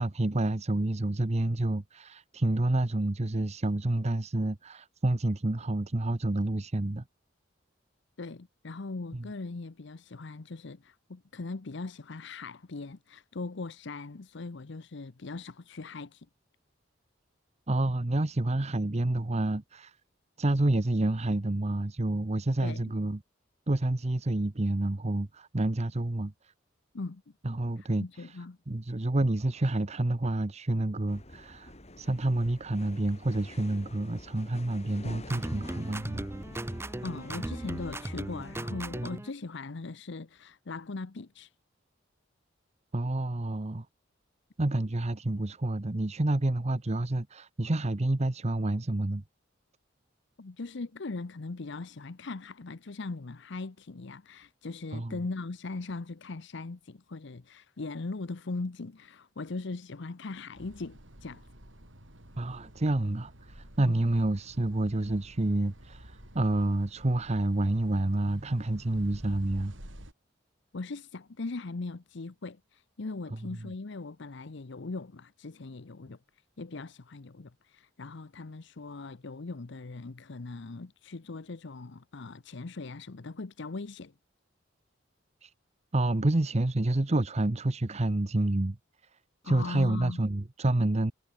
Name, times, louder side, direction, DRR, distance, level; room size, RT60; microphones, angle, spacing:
voice 1, 0.0-7.0 9.1-9.2 17.7-20.0 20.4-23.2 23.7-26.3 27.4-28.3 28.7-36.3 39.0-39.1 42.9-43.9 44.6-49.2 54.9-55.2 62.4-69.7 85.4-85.5 85.9-88.8 89.4-91.1, right 1 dB, 35° right, 0.9 m, -28 dB
voice 2, 8.2-16.3 22.6-22.8 26.9-27.2 27.8-28.6 37.0-41.5 50.4-61.5 63.8-64.0 70.7-76.2 76.6-84.1 89.4-90.2, left 3 dB, 65° left, 0.8 m, -40 dB
sound 1, 31.1-38.6, left 1 dB, 35° left, 6.5 m, -48 dB
sound 2, 35.2-39.3, right 1 dB, 15° right, 0.6 m, -37 dB
sound 3, 60.6-70.1, equal, 80° right, 7.2 m, -50 dB
head